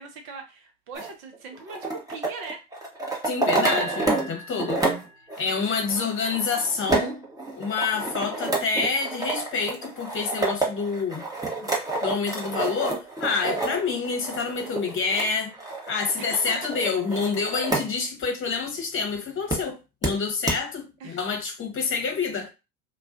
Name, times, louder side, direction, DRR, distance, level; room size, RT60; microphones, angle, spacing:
voice 1, 0.0-2.7 3.8-3.9 5.7-6.1 16.2-16.7 21.0-21.2, right 4 dB, 65° right, 0.9 m, -40 dB
sound 1, 0.9-4.3 4.6-17.9 18.2-18.3 19.5-19.6 20.0-20.1 20.5-20.6, right 2 dB, 10° right, 0.8 m, -29 dB
voice 2, 3.2-4.8 5.4-7.2 7.6-11.2 11.6-11.7 12.0-15.5 15.9-22.5, left 5 dB, 30° left, 1.0 m, -27 dB
sound 2, 3.7-5.8, right 1 dB, 90° right, 0.6 m, -38 dB
2.3 x 2.3 x 2.4 m
figure-of-eight pair, 70°, 43 cm